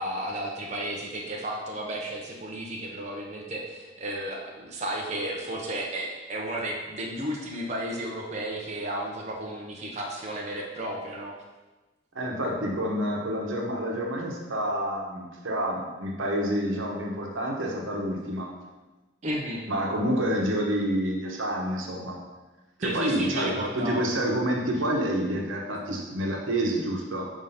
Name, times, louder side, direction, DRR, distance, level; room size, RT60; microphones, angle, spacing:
voice 1, 0.0-11.4 19.2-19.7 22.8-24.0, right 1 dB, 35° right, -2 dB, 0.7 m, -33 dB
voice 2, 12.1-18.5 19.7-22.2 22.8-27.2, right 1 dB, 85° right, -1 dB, 1.1 m, -28 dB
4.9 x 3.7 x 5.6 m, 1.2 s
head